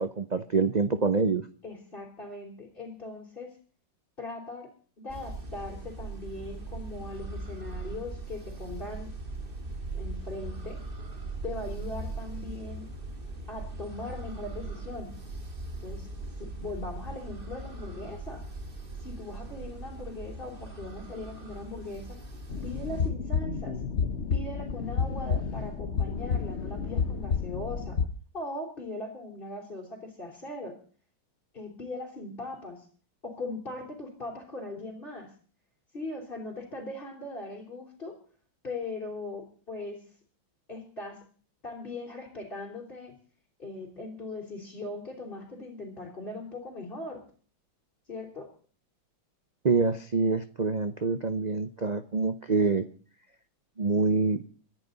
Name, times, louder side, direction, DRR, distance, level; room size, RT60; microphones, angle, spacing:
voice 1, 0.0-1.5 49.6-52.9 53.8-54.4, right 4 dB, 80° right, 11 dB, 0.3 m, -26 dB
voice 2, 1.6-3.5 4.2-4.7 5.0-9.1 9.9-10.8 11.4-12.9 13.5-15.1 15.8-16.1 16.4-18.4 19.0-22.2 22.6-23.8 24.3-28.0 28.3-30.8 31.5-32.9 33.2-35.3 35.9-38.2 38.6-40.0 40.7-41.2 41.6-43.1 43.6-47.2 48.1-48.5, left 2 dB, 25° left, -3 dB, 4.2 m, -39 dB
sound 1, 5.1-23.1, right 3 dB, 25° right, 2.2 m, -40 dB
sound 2, 22.5-28.1, left 6 dB, 45° left, 1.0 m, -30 dB
25.5 x 10.5 x 4.0 m, 0.42 s
omnidirectional pair, 2.2 m